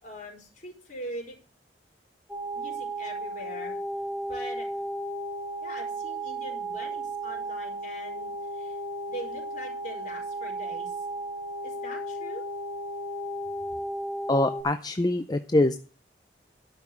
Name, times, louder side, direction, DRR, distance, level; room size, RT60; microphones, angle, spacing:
voice 1, 0.0-1.3 2.5-3.8 4.3-4.7 5.6-8.8 9.1-11.0 11.6-12.4, equal, 45° left, 1 dB, 4.9 m, -42 dB
sound 1, 2.3-14.6, right 1 dB, 10° right, 1.6 m, -34 dB
voice 2, 14.3-15.8, left 1 dB, 25° left, 9 dB, 0.5 m, -24 dB
12.0 x 5.9 x 7.5 m, 0.37 s
head